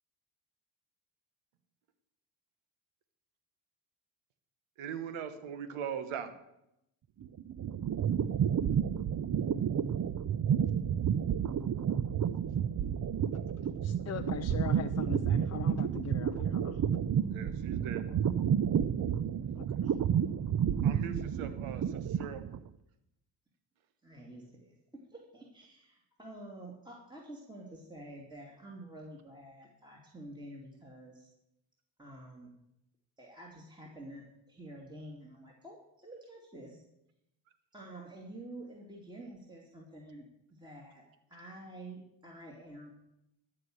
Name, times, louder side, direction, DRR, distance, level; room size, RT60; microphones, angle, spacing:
voice 1, 4.8-6.3 17.3-18.1 20.8-22.4, right 7 dB, 80° right, 11 dB, 1.2 m, -40 dB
sound 1, 7.2-22.7, right 8 dB, 40° right, 0.6 m, -31 dB
voice 2, 13.8-17.0 19.5-20.0, left 9 dB, 35° left, 10 dB, 0.4 m, -41 dB
voice 3, 24.0-24.8 25.1-31.3 32.0-32.5 33.2-36.8 37.7-41.0 41.3-42.9, right 1 dB, 10° right, -2 dB, 2.4 m, -49 dB
13.0 x 5.0 x 7.7 m, 0.84 s
supercardioid pair, 60°, 48 cm